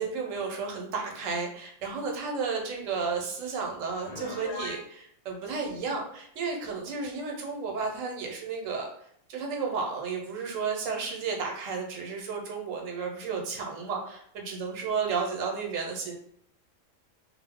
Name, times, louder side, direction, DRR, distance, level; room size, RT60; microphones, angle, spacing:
voice 1, 0.0-8.9 9.3-16.1, right 5 dB, 85° right, 1 dB, 1.0 m, -32 dB
Piano, 4.0-4.9, left 4 dB, 55° left, 0.6 m, -38 dB
2.6 x 2.0 x 3.4 m, 0.67 s
omnidirectional pair, 1.3 m